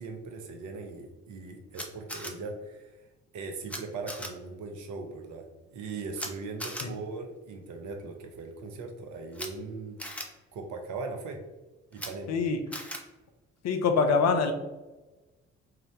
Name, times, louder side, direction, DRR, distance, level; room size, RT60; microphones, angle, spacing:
voice 1, 0.0-3.0 3.3-5.4 5.7-10.0 10.5-11.4 11.9-12.4, right 3 dB, 60° right, 4 dB, 0.8 m, -39 dB
Camera, 1.7-2.3 3.7-3.8 4.1-4.3 6.2-6.3 6.6-6.9 9.3-9.5 10.0-10.2 11.9-12.1 12.7-13.0, equal, 5° left, 0.7 m, -37 dB
voice 2, 12.3-12.6 13.6-14.5, left 5 dB, 50° left, 6 dB, 0.6 m, -24 dB
3.8 x 2.7 x 3.1 m, 1.1 s
hypercardioid pair, 45°, 33 cm